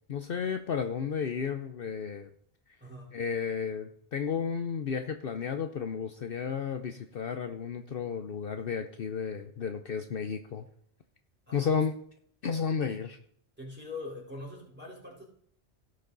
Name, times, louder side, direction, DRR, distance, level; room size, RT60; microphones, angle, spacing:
voice 1, 0.1-2.3 3.1-10.6 11.5-11.9 12.4-13.2, left 6 dB, 60° left, 7 dB, 0.9 m, -32 dB
voice 2, 2.8-3.1 11.5-11.9 13.6-15.3, left 2 dB, 10° right, -4 dB, 3.7 m, -43 dB
16.5 x 6.5 x 4.0 m, 0.65 s
omnidirectional pair, 1.1 m